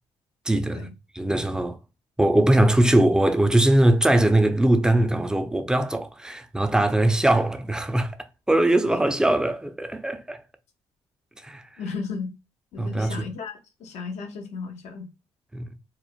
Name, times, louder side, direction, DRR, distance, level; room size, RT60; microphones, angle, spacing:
voice 1, 0.5-0.9 1.1-1.8 2.2-8.2 8.5-10.4 11.4-11.6 12.8-13.3 15.5-15.7, right 1 dB, 5° right, 0.4 m, -21 dB
voice 2, 11.8-12.3 12.7-15.1, left 5 dB, 75° left, 0.6 m, -34 dB
3.0 x 2.0 x 2.4 m
supercardioid pair, 60°, 12 cm